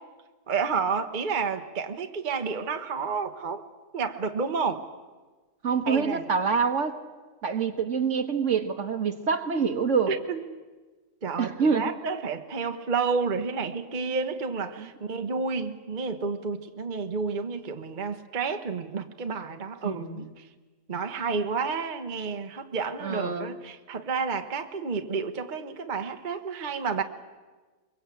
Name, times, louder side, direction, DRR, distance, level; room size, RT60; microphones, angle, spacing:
voice 1, 0.5-3.6 3.9-4.8 5.9-6.2 10.1-10.4 11.2-20.4 20.9-27.0, right 5 dB, 35° right, 6 dB, 1.1 m, -30 dB
voice 2, 5.6-7.0 7.4-10.1 11.4-11.9 14.8-14.9 19.8-20.3 23.0-23.5, right 5 dB, 50° right, 8 dB, 1.5 m, -26 dB
23.5 x 22.5 x 8.4 m, 1.3 s
omnidirectional pair, 1.7 m